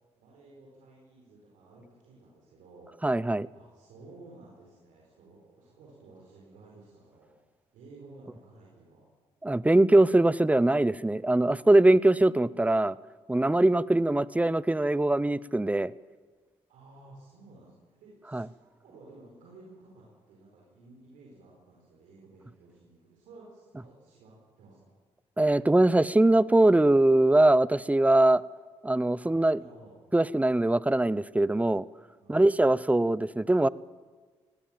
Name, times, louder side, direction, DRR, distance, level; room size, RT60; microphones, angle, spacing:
voice 1, 0.2-3.1 3.5-7.3 7.7-9.1 16.7-18.5 18.8-24.9 29.2-30.0 32.2-32.8, right 2 dB, 85° right, -3 dB, 4.6 m, -54 dB
voice 2, 3.0-3.5 9.4-13.0 13.3-15.9 18.3-18.5 25.4-28.4 28.8-29.6 30.1-31.9 32.3-33.7, right 2 dB, 10° right, 20 dB, 0.7 m, -22 dB
20.0 x 18.0 x 7.6 m, 1.4 s
supercardioid pair, 55°, 13 cm